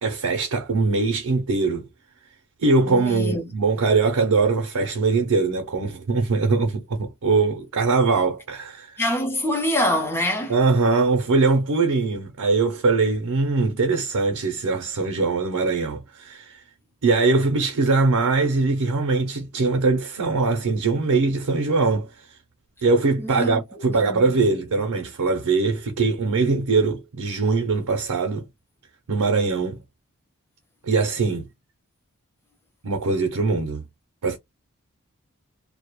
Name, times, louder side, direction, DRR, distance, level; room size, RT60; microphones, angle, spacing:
voice 1, 0.0-1.9 2.6-9.0 10.5-16.6 17.0-22.1 22.8-28.5 29.1-29.8 30.8-31.5 32.8-33.8 34.2-34.4, right 3 dB, 90° right, 0.6 m, -22 dB
voice 2, 2.9-3.5 9.0-10.6 23.2-23.6 23.9-24.3, left 1 dB, 10° left, 0.6 m, -25 dB
2.3 x 2.1 x 2.9 m
head